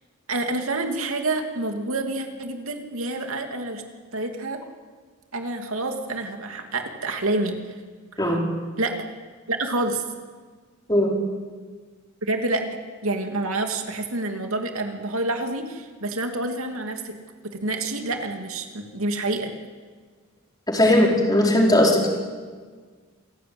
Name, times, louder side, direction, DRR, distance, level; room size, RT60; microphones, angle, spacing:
voice 1, 0.3-3.8 4.1-4.6 5.3-7.6 8.1-8.3 8.8-8.9 9.5-10.0 12.2-12.7 13.0-17.2 17.4-19.5, right 2 dB, 75° right, 5 dB, 2.7 m, -28 dB
voice 2, 20.7-22.1, left 1 dB, 20° left, 0 dB, 4.6 m, -18 dB
27.0 x 17.5 x 9.7 m, 1.5 s
head